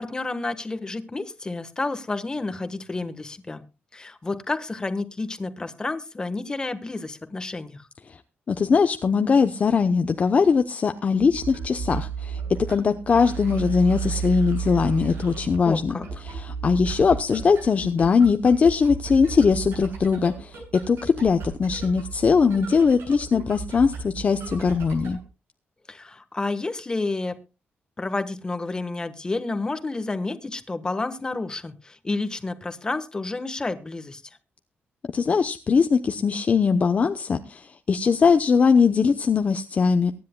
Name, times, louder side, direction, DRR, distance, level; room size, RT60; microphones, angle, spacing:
voice 1, 0.0-3.6 3.9-7.8 15.7-16.1 25.9-27.4 28.0-34.2, left 3 dB, 20° left, 11 dB, 1.3 m, -30 dB
voice 2, 8.5-12.4 12.7-25.2 35.1-40.1, left 5 dB, 35° left, 7 dB, 0.8 m, -21 dB
sound 1, 11.2-25.3, right 6 dB, 80° right, 7.4 m, -34 dB
23.5 x 10.5 x 2.2 m, 0.28 s
wide cardioid pair, 145°, 4 cm